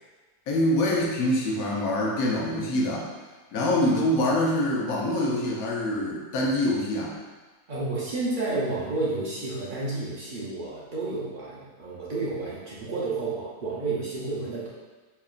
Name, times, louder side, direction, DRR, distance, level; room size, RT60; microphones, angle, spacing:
voice 1, 0.5-3.1 3.5-7.2, left 1 dB, 65° left, -3 dB, 1.1 m, -25 dB
voice 2, 7.7-14.7, right 3 dB, 75° right, -7 dB, 0.4 m, -31 dB
4.4 x 2.9 x 2.4 m, 1.3 s
omnidirectional pair, 1.7 m